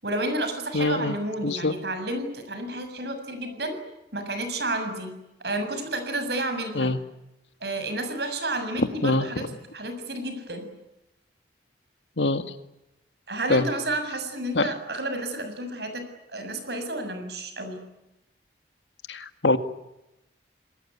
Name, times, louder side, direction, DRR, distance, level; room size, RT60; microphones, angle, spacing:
voice 1, 0.0-3.8 4.1-5.1 5.4-6.9 7.6-10.7 13.3-16.0 16.3-17.8, right 1 dB, 65° right, 8 dB, 7.1 m, -31 dB
voice 2, 0.7-1.2 1.4-1.7 6.8-7.0 9.0-9.3 12.2-12.4 13.5-13.6 14.5-14.7 19.1-19.6, left 2 dB, 90° left, 10 dB, 2.1 m, -23 dB
27.5 x 21.0 x 9.9 m, 0.91 s
head